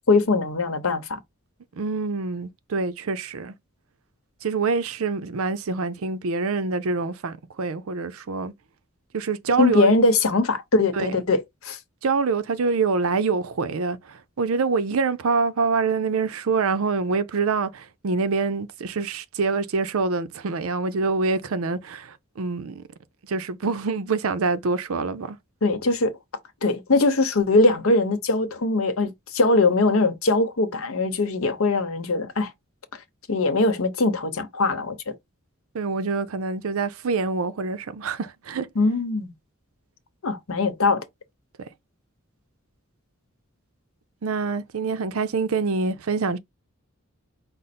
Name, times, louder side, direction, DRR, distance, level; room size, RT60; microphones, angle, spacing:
voice 1, 0.1-1.2 9.6-11.8 25.6-26.2 26.6-32.5 33.3-35.1 38.7-39.3 40.2-41.0, left 3 dB, 75° left, 0.9 m, -21 dB
voice 2, 1.7-3.5 4.4-8.5 9.1-10.0 10.9-11.1 12.0-22.9 23.3-25.4 35.7-38.7 44.2-46.4, right 4 dB, 75° right, 0.5 m, -25 dB
5.1 x 2.0 x 4.2 m
head